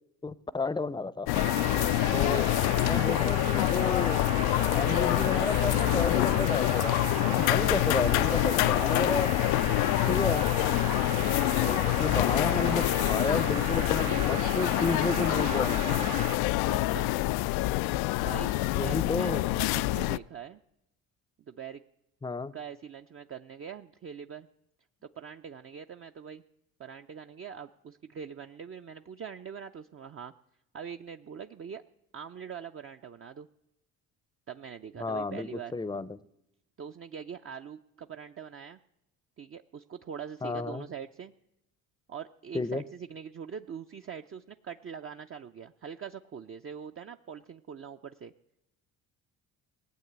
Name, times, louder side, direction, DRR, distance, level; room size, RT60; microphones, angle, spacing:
voice 1, 0.2-1.3 2.1-2.5 2.8-4.2 4.7-9.3 10.1-10.5 11.5-16.1 18.7-19.4 22.2-22.5 35.0-36.2 40.4-40.8 42.5-42.8, left 3 dB, 10° left, 18 dB, 0.6 m, -32 dB
sound 1, 1.3-20.2, left 18 dB, 75° left, 0.5 m, -26 dB
sound 2, 1.3-16.3, right 9 dB, 80° right, 1.8 m, -37 dB
voice 2, 2.1-2.5 11.2-11.4 16.7-17.1 18.2-18.5 18.8-20.6 21.5-21.8 22.5-24.5 25.0-26.4 26.8-30.3 30.7-31.8 32.1-33.5 34.5-35.8 36.8-38.8 39.4-41.3 42.1-48.3, right 7 dB, 35° right, 6 dB, 0.6 m, -43 dB
18.5 x 8.4 x 8.1 m, 0.88 s
supercardioid pair, 75°, 38 cm